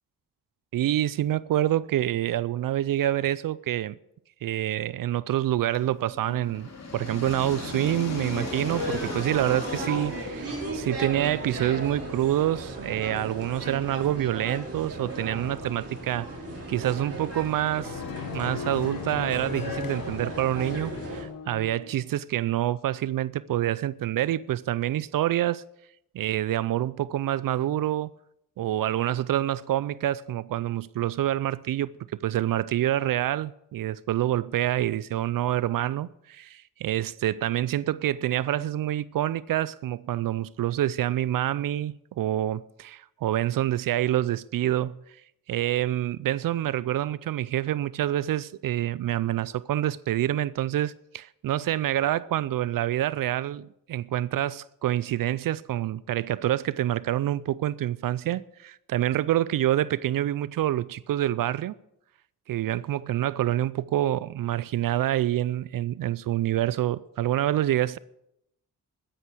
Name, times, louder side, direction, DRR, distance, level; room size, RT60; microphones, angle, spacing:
voice 1, 0.7-4.0 4.4-16.3 16.7-18.0 18.3-25.6 26.1-28.1 28.6-31.9 32.2-44.9 45.5-61.8 62.5-68.0, right 13 dB, 75° right, 0.5 m, -27 dB
sound 1, 5.7-11.6, left 3 dB, 50° left, 3.1 m, -38 dB
sound 2, 8.2-21.2, right 1 dB, 45° right, 4.7 m, -36 dB
sound 3, 17.8-22.0, left 7 dB, 75° left, 1.2 m, -37 dB
13.0 x 10.0 x 6.1 m
cardioid pair, 75°, 34 cm